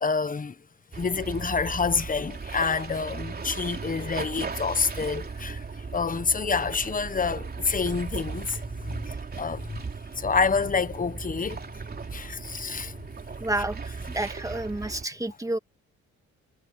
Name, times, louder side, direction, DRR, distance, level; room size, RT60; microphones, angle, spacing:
voice 1, 0.0-0.6 1.0-5.6 5.9-9.8 10.2-11.6 12.1-12.9, left 5 dB, 25° left, 1.2 m, -28 dB
sound 1, 0.9-15.0, right 4 dB, 30° right, 3.2 m, -37 dB
voice 2, 13.4-15.6, right 1 dB, 10° right, 2.5 m, -30 dB
cardioid pair, 90°, 30 cm